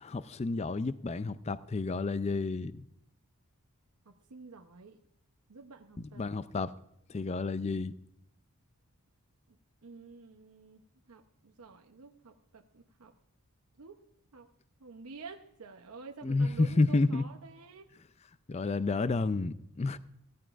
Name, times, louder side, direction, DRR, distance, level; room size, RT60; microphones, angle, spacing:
voice 1, 0.0-2.8 6.0-6.7 7.1-7.9 16.2-17.2 18.5-20.0, left 3 dB, 30° left, 0.4 m, -30 dB
voice 2, 4.1-5.0 5.5-6.2 9.8-13.1 13.8-14.0 14.3-14.5 14.8-17.9, right 4 dB, 85° right, 0.8 m, -50 dB
16.0 x 14.0 x 2.5 m
head